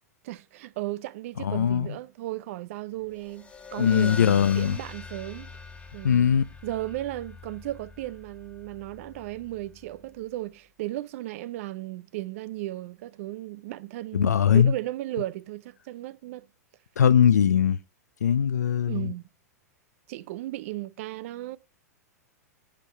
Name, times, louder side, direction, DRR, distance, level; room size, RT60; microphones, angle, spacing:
voice 1, 0.2-5.6 5.9-6.4 6.6-16.4 18.9-19.2 20.1-21.6, right 16 dB, 55° right, 0.5 m, -35 dB
voice 2, 1.4-1.9 3.8-4.8 6.0-6.4 14.1-14.7 17.0-17.8 18.2-19.1, left 8 dB, 80° left, 0.5 m, -21 dB
sound 1, 3.1-10.1, left 4 dB, 15° left, 1.4 m, -43 dB
10.5 x 5.3 x 4.2 m
hypercardioid pair, 105°, 9 cm